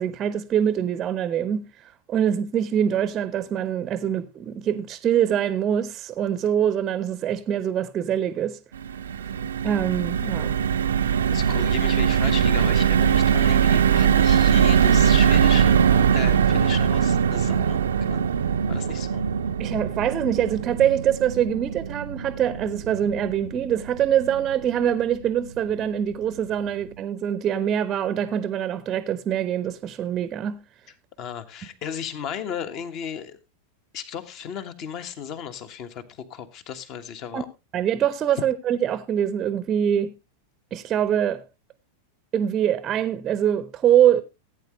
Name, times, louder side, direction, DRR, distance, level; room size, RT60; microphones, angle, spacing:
voice 1, 0.0-8.6 9.6-10.5 19.6-30.6 37.3-37.4 37.7-40.1 40.7-41.4 42.3-44.2, right 9 dB, 25° right, 0.7 m, -24 dB
sound 1, 8.7-25.0 25.4-25.6 25.8-26.1, right 8 dB, 65° right, 0.6 m, -21 dB
voice 2, 11.3-17.8 18.1-18.2 18.7-19.2 31.2-33.4 33.9-37.5 38.4-38.5, left 8 dB, 40° left, 1.4 m, -35 dB
16.0 x 9.1 x 3.1 m
figure-of-eight pair, 90°, 0 cm